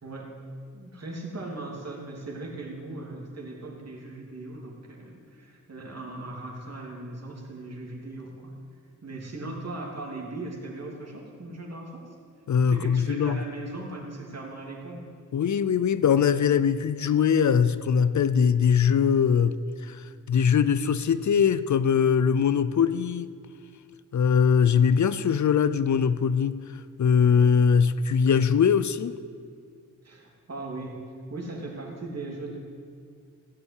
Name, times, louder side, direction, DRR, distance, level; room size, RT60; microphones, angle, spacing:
voice 1, 0.0-0.3 0.7-8.5 9.0-12.0 12.6-15.0 30.0-31.0 31.3-32.6, right 2 dB, 50° right, -1 dB, 3.0 m, -38 dB
voice 2, 12.5-13.4 15.3-23.3 24.1-29.2, left 7 dB, 60° left, 14 dB, 0.5 m, -22 dB
15.5 x 8.5 x 8.3 m, 2.2 s
wide cardioid pair, 100°, 33 cm